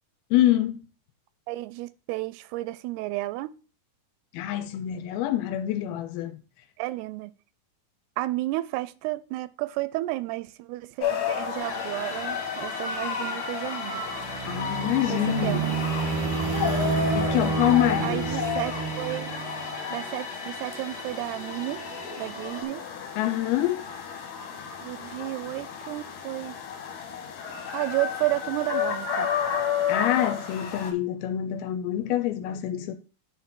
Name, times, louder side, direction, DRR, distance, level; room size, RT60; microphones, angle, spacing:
voice 1, 0.3-0.8 4.3-6.4 14.4-15.7 17.1-18.3 23.2-23.8 29.9-32.9, left 13 dB, 80° left, 2.5 m, -26 dB
voice 2, 1.5-3.5 6.8-7.3 8.2-14.0 15.1-15.8 18.0-19.4 19.9-21.8 22.2-22.8 24.8-26.5 27.7-29.3, right 18 dB, 90° right, 2.6 m, -32 dB
sound 1, 11.0-30.9, left 7 dB, 60° left, 2.3 m, -32 dB
sound 2, 11.6-22.6, left 1 dB, 15° left, 1.8 m, -40 dB
sound 3, 14.0-19.8, right 4 dB, 60° right, 1.5 m, -29 dB
10.0 x 4.3 x 3.7 m
omnidirectional pair, 4.6 m